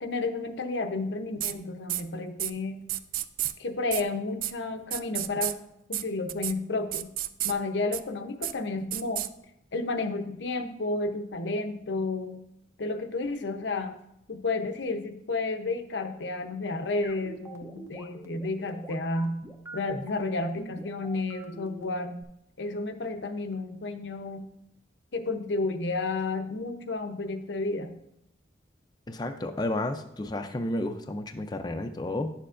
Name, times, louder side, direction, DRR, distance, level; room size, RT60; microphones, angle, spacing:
voice 1, 0.0-2.9 3.6-5.6 5.9-7.1 7.4-9.3 9.7-12.4 12.8-14.0 14.3-19.4 19.7-22.1 22.6-24.5 25.1-28.0, left 3 dB, 85° left, 7 dB, 0.7 m, -31 dB
sound 1, 1.4-1.5 1.9-2.0 2.4-2.5 2.9-3.5 3.9-4.0 4.4-4.5 4.9-5.5 5.9-6.0 6.3-6.5 6.9-7.5 7.9-8.0 8.4-8.5 8.9-9.3, right 14 dB, 50° right, 0.3 m, -30 dB
sound 2, 17.0-22.2, right 1 dB, 15° right, 0.6 m, -43 dB
voice 2, 29.1-32.3, left 1 dB, 25° left, 6 dB, 0.4 m, -31 dB
10.5 x 6.8 x 2.5 m, 0.79 s
head